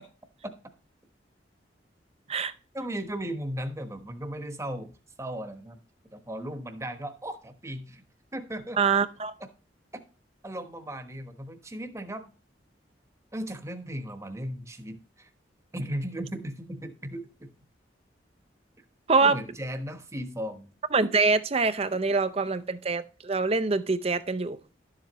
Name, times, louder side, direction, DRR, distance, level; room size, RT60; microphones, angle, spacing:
voice 1, 2.7-5.8 6.1-8.0 8.3-9.0 9.4-9.5 10.4-12.3 13.3-15.3 15.7-17.5 19.2-20.7, equal, 15° right, 1.1 m, -36 dB
voice 2, 8.8-9.3 19.1-19.4 20.9-24.6, right 4 dB, 35° right, 0.6 m, -24 dB
12.0 x 7.6 x 3.0 m
head